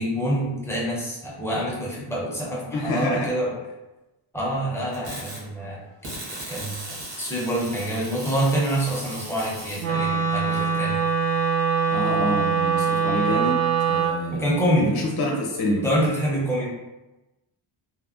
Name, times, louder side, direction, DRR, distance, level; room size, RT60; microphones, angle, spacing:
voice 1, 0.0-3.5 4.3-5.8 6.5-11.1 14.3-15.0 15.8-16.7, right 1 dB, 5° left, -5 dB, 0.5 m, -26 dB
voice 2, 2.7-3.3 5.0-5.2 11.9-14.5 14.8-15.9, left 1 dB, 50° left, -2 dB, 0.8 m, -27 dB
sound 1, 4.9-5.4 6.0-9.9, right 1 dB, 90° right, 1.4 m, -37 dB
Wind instrument woodwind instrument, 9.8-14.2, right 6 dB, 65° right, 0.7 m, -23 dB
3.4 x 2.1 x 2.4 m, 1.0 s
cardioid pair, 155°, 50 cm